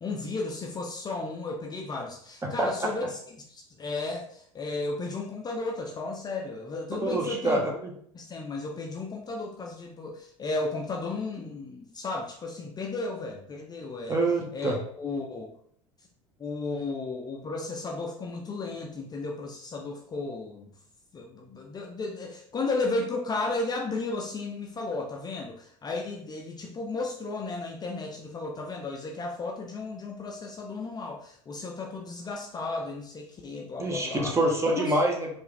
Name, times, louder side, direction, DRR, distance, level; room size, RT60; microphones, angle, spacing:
voice 1, 0.0-7.6 8.1-14.2 14.5-15.5 16.4-20.7 21.1-34.4 34.7-35.0, left 3 dB, 25° left, 0 dB, 0.6 m, -34 dB
voice 2, 7.0-7.9 14.1-14.8 33.8-35.3, right 1 dB, 15° right, 0 dB, 1.0 m, -26 dB
4.5 x 2.5 x 3.3 m, 0.63 s
figure-of-eight pair, 70°, 16 cm